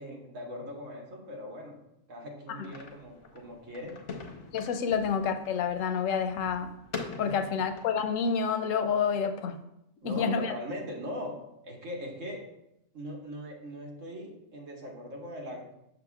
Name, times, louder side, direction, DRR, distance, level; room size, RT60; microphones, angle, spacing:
voice 1, 0.0-1.7 2.1-4.0 7.3-7.4 10.0-12.4 12.9-15.7, equal, 80° right, -1 dB, 1.6 m, -40 dB
sound 1, 2.6-8.1, left 4 dB, 70° left, 1.1 m, -44 dB
voice 2, 4.5-6.7 7.2-9.6 10.0-10.5, left 6 dB, 85° left, 8 dB, 1.0 m, -28 dB
6.8 x 6.6 x 2.3 m, 0.82 s
omnidirectional pair, 1.3 m